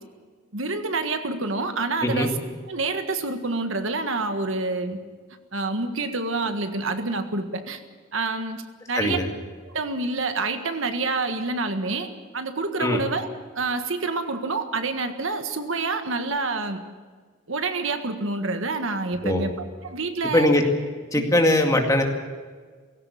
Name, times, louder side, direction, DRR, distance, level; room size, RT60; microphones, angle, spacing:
voice 1, 0.5-2.3 2.7-5.0 5.5-7.8 8.1-8.6 8.9-9.2 9.6-13.3 13.5-16.8 17.5-20.5 21.1-21.2, right 3 dB, 65° right, 7 dB, 1.6 m, -27 dB
voice 2, 20.3-20.6 21.1-22.0, left 1 dB, 15° left, 3 dB, 2.2 m, -20 dB
18.5 x 17.0 x 8.5 m, 1.5 s
head